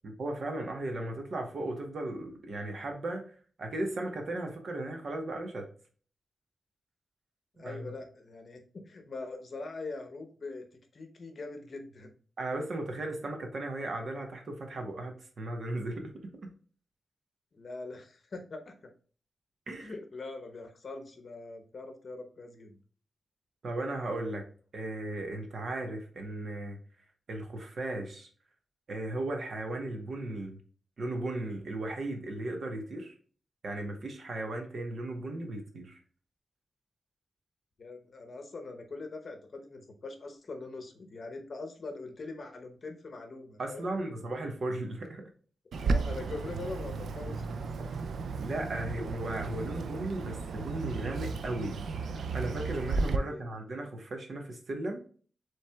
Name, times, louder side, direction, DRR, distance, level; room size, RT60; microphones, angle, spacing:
voice 1, 0.0-3.2 3.6-5.7 7.6-7.9 12.4-16.5 19.7-19.9 23.6-24.5 24.7-26.8 27.3-28.3 28.9-30.6 31.0-33.1 33.6-36.0 43.6-45.3 48.4-55.0, right 2 dB, 55° right, 1.0 m, -36 dB
voice 2, 7.6-10.6 10.9-12.1 17.5-18.8 19.8-22.8 37.8-44.0 45.8-48.0 53.2-53.7, left 3 dB, 50° left, 0.8 m, -43 dB
Bird, 45.7-53.2, right 4 dB, 85° right, 0.4 m, -34 dB
7.2 x 3.2 x 2.2 m
wide cardioid pair, 135°, 0 cm